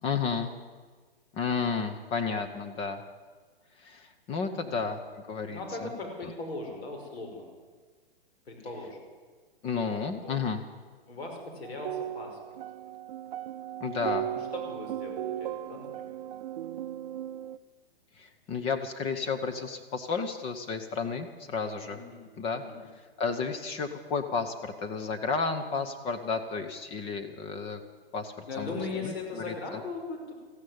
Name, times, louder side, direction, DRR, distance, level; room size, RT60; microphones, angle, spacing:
voice 1, 0.0-0.5 1.3-3.0 3.8-5.9 9.6-10.6 13.8-14.3 18.2-22.0 22.4-22.6 23.2-27.8 28.1-28.7 29.0-29.1, left 5 dB, 20° left, 7 dB, 0.8 m, -32 dB
voice 2, 4.5-4.8 5.5-7.5 8.5-9.0 10.2-10.4 11.1-12.4 14.1-16.6 21.9-22.9 28.5-30.3, left 3 dB, 85° left, 1 dB, 5.3 m, -39 dB
sound 1, 11.6-17.6, right 12 dB, 45° right, 0.6 m, -36 dB
14.5 x 10.5 x 9.4 m, 1.4 s
hypercardioid pair, 145°, 31 cm